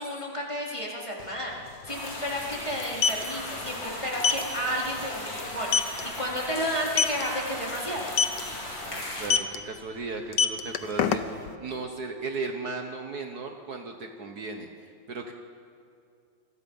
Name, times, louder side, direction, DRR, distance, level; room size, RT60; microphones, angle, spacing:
voice 1, 0.0-8.1, equal, 15° left, -3 dB, 4.0 m, -32 dB
sound 1, 1.2-1.3 1.5-1.7 2.7-3.2 4.2-4.4 4.9-5.0 5.4-5.5 5.7-6.0 6.9-7.2 8.1-8.4 9.2-9.6 10.2-11.5, left 7 dB, 70° left, 1.6 m, -23 dB
sound 2, 1.9-9.3, left 1 dB, 85° left, 4.7 m, -37 dB
voice 2, 8.8-14.7 15.1-15.3, right 3 dB, 55° right, 4 dB, 1.7 m, -36 dB
28.0 x 21.5 x 5.6 m, 2.4 s
omnidirectional pair, 2.0 m